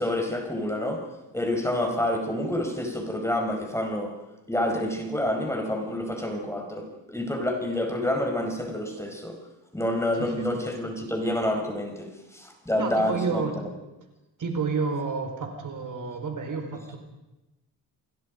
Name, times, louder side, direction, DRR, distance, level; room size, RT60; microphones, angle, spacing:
voice 1, 0.0-4.1 4.5-9.4 9.7-13.7, left 1 dB, 5° left, 2 dB, 5.0 m, -28 dB
voice 2, 12.8-13.5 14.4-17.0, right 4 dB, 55° right, 5 dB, 4.7 m, -30 dB
27.5 x 21.5 x 5.3 m, 1.0 s
cardioid pair, 105°, 38 cm